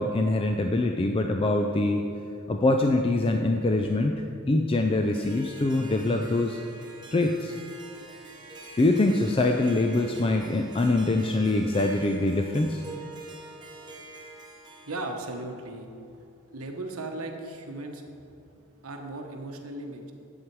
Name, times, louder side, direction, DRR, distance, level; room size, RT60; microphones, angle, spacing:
voice 1, 0.0-2.1 2.5-6.6 7.1-7.5 8.8-12.8, left 2 dB, 25° left, 4 dB, 0.4 m, -24 dB
Harp, 4.9-15.4, right 3 dB, 20° right, 1.1 m, -46 dB
voice 2, 14.8-15.9 16.5-18.0 18.8-20.1, right 2 dB, 75° right, 3 dB, 1.1 m, -36 dB
10.5 x 8.1 x 4.7 m, 2.5 s
head